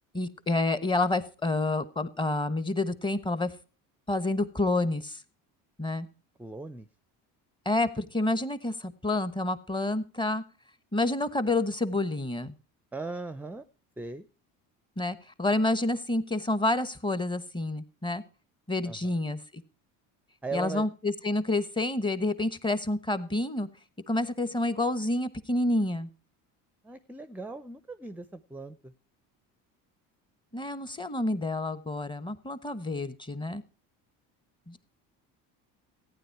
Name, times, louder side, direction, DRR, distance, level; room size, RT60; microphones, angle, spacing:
voice 1, 0.1-3.5 4.1-5.2 5.8-6.1 7.6-10.4 10.9-12.6 15.0-18.2 18.7-19.6 20.5-23.7 24.1-26.1 30.5-33.6 34.7-34.9, left 2 dB, 15° left, 13 dB, 1.0 m, -29 dB
voice 2, 6.4-6.9 12.9-13.6 14.0-14.3 18.8-19.1 20.4-20.9 26.8-28.9, right 3 dB, 5° right, 14 dB, 0.5 m, -38 dB
14.5 x 9.6 x 4.6 m, 0.36 s
cardioid pair, 120°, 35 cm